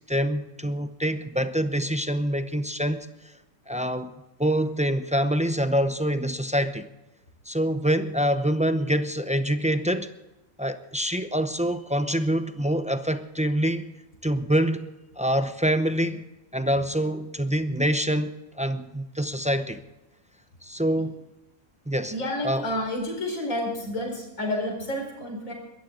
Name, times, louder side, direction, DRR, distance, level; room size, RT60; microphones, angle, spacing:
voice 1, 0.0-3.1 3.7-4.1 4.4-6.9 7.5-10.1 10.6-13.9 14.2-14.9 15.2-16.2 16.5-19.8 20.6-21.1 21.9-22.1 22.4-22.7, equal, 10° right, 10 dB, 0.3 m, -25 dB
voice 2, 22.1-25.5, left 1 dB, 75° left, 1 dB, 4.8 m, -30 dB
22.5 x 14.0 x 3.8 m, 1.0 s
omnidirectional pair, 1.4 m